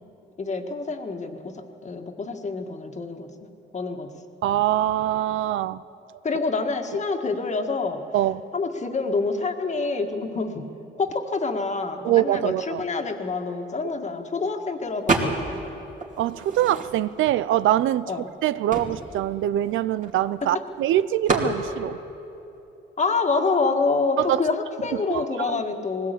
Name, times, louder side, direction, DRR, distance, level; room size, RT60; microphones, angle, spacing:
voice 1, 0.4-3.3 3.7-4.1 6.2-8.0 8.5-10.7 11.0-15.6 18.1-18.3 20.4-20.5 23.0-26.1, left 4 dB, 35° left, 1.8 m, -27 dB
voice 2, 4.4-5.8 8.1-8.4 12.0-12.8 16.2-18.1 18.4-22.0 24.2-24.5 25.1-25.6, right 12 dB, 80° right, 0.5 m, -23 dB
sound 1, 15.1-15.7 16.0-17.2 17.9-18.0 18.2-20.4 21.3-21.6, right 3 dB, 40° right, 2.9 m, -27 dB
20.0 x 17.5 x 8.4 m
cardioid pair, 90°, 20 cm